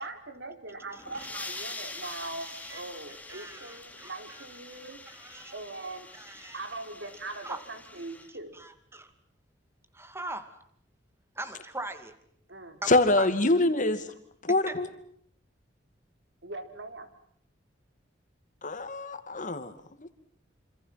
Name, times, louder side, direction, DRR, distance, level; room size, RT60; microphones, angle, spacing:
voice 1, 0.0-5.0 5.5-6.1 6.5-8.6 12.5-13.0 16.4-17.1, right 2 dB, 75° right, 8 dB, 4.0 m, -41 dB
sound 1, 0.8-8.3, left 2 dB, 10° left, 2.8 m, -44 dB
voice 2, 1.8-2.8 3.3-4.4 5.1-5.5 6.2-6.6 7.4-7.6 8.5-9.1 9.9-10.6 11.4-12.1 12.8-12.9 13.2-13.3 14.7-14.8, right 2 dB, 15° right, 10 dB, 2.3 m, -41 dB
voice 3, 12.9-14.1 14.4-14.9 18.6-19.7 20.0-20.1, left 2 dB, 45° left, 10 dB, 2.4 m, -25 dB
28.0 x 26.5 x 5.9 m, 0.64 s
head